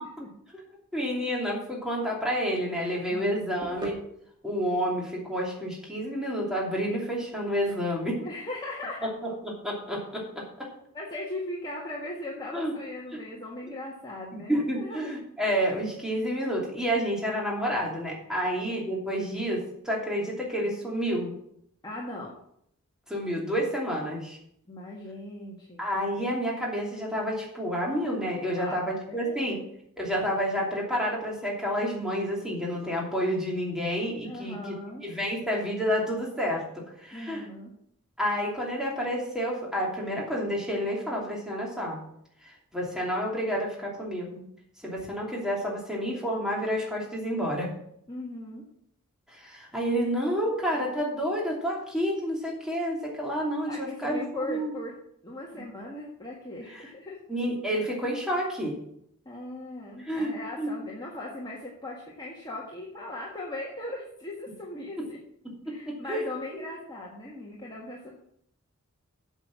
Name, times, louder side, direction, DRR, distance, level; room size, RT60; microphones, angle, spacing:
voice 1, 0.9-3.9 4.4-8.2 9.0-9.3 9.6-10.7 12.5-12.7 14.3-21.3 23.1-24.4 25.8-29.6 30.0-34.7 35.0-37.5 38.2-42.0 42.4-44.4 44.8-47.7 49.3-54.7 56.7-56.8 57.3-58.7 60.1-60.3 60.6-60.8 65.7-66.3 66.5-66.7, equal, 5° right, -3 dB, 2.8 m, -29 dB
sound 1, 2.4-10.2, right 1 dB, 20° right, 2.2 m, -46 dB
voice 2, 8.2-9.1 10.9-15.1 18.3-18.5 21.8-22.3 24.7-25.8 28.5-29.5 34.2-35.1 37.1-37.7 48.1-48.6 53.7-54.9 55.2-57.2 59.2-65.2 65.6-68.1, left 1 dB, 20° left, -4 dB, 1.6 m, -39 dB
8.2 x 7.3 x 7.3 m, 0.72 s
head